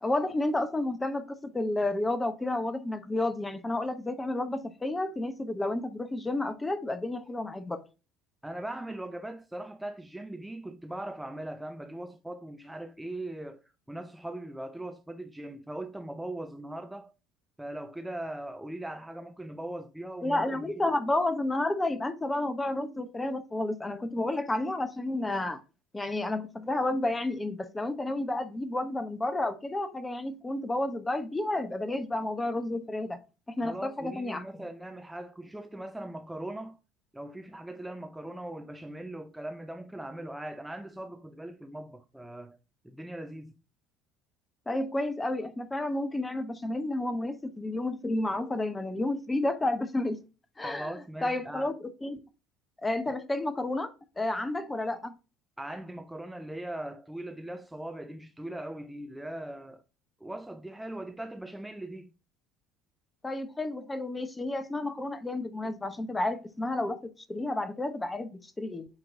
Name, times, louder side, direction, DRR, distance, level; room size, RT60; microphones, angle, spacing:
voice 1, 0.0-7.8 20.2-25.6 25.9-33.2 33.5-34.6 44.7-50.2 50.6-50.9 51.2-51.7 52.0-52.2 52.8-55.1 63.2-67.0 67.3-68.9, left 2 dB, 15° left, 0.9 m, -31 dB
voice 2, 8.4-17.1 17.6-20.8 33.6-36.8 37.1-42.6 42.8-43.6 50.6-51.7 53.1-53.2 55.6-59.8 60.2-62.1, right 1 dB, 5° right, 0.5 m, -40 dB
8.7 x 3.1 x 3.6 m
figure-of-eight pair, 65°, 0 cm